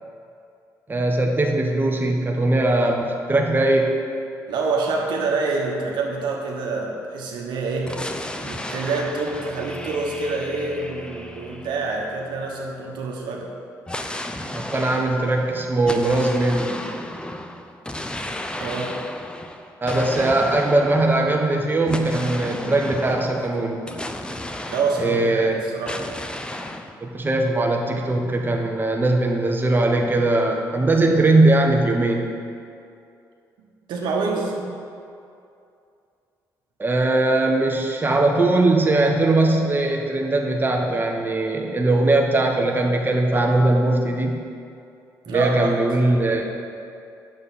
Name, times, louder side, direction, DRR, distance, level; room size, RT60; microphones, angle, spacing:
voice 1, 0.9-4.0 14.5-16.8 19.8-23.8 25.0-25.6 27.0-32.3 36.8-44.4 45.3-46.5, right 2 dB, 25° right, 1 dB, 1.1 m, -20 dB
voice 2, 4.5-8.0 8.4-13.5 18.6-19.0 24.7-26.1 33.9-34.6 45.3-45.7, right 3 dB, 70° right, 0 dB, 1.2 m, -26 dB
sound 1, 7.9-12.6 13.9-25.5 25.9-26.9, left 1 dB, 10° left, 0.7 m, -34 dB
8.7 x 7.2 x 4.3 m, 2.5 s
supercardioid pair, 55°, 8 cm